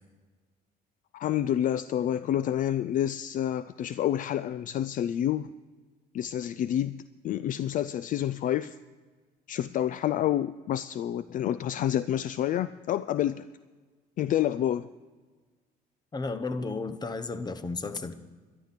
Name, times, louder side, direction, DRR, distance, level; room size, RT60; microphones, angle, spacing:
voice 1, 1.1-5.5 6.1-8.8 9.5-13.5 14.2-14.9, left 11 dB, 50° left, 0.4 m, -28 dB
voice 2, 16.1-18.2, left 3 dB, 25° left, 0.9 m, -33 dB
12.5 x 12.0 x 5.8 m
cardioid pair, 110°, 17 cm